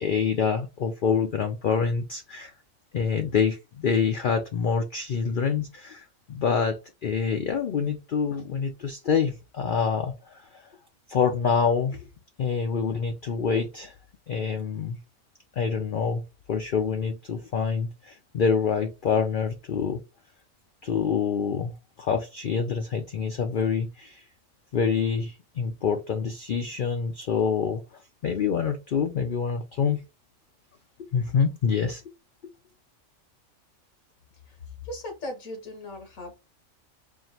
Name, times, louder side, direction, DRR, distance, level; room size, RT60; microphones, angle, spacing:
voice 1, 0.0-2.5 2.9-10.6 11.1-12.1 12.4-13.9 14.3-15.0 15.6-16.2 16.5-20.0 20.8-24.2 24.7-27.8 28.2-30.0 31.1-32.0, left 6 dB, 55° left, 0.6 m, -26 dB
voice 2, 34.8-36.3, left 1 dB, 80° left, 1.6 m, -37 dB
4.5 x 2.6 x 2.8 m
omnidirectional pair, 1.4 m